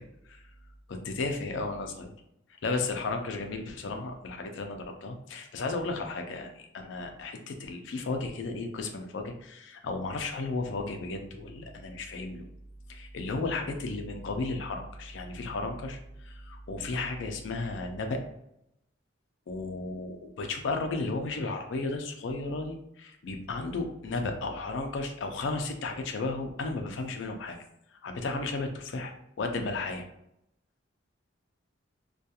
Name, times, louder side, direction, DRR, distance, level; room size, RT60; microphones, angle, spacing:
voice 1, 0.9-2.1 2.6-12.5 12.9-18.2 19.5-27.6 28.0-29.1 29.4-30.1, left 3 dB, 70° left, 4 dB, 0.4 m, -34 dB
2.8 x 2.3 x 2.2 m, 0.80 s
head